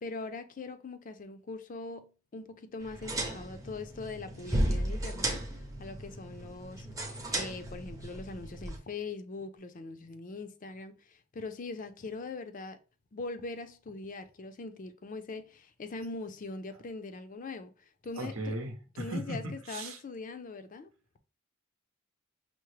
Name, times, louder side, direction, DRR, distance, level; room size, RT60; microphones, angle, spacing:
voice 1, 0.0-6.9 7.3-12.8 13.1-18.5 19.0-20.9, left 3 dB, 40° left, 0.4 m, -42 dB
sound 1, 2.8-8.8, right 1 dB, 15° right, 0.7 m, -35 dB
voice 2, 18.2-20.0, right 1 dB, 75° right, 0.8 m, -37 dB
5.7 x 2.0 x 3.1 m
head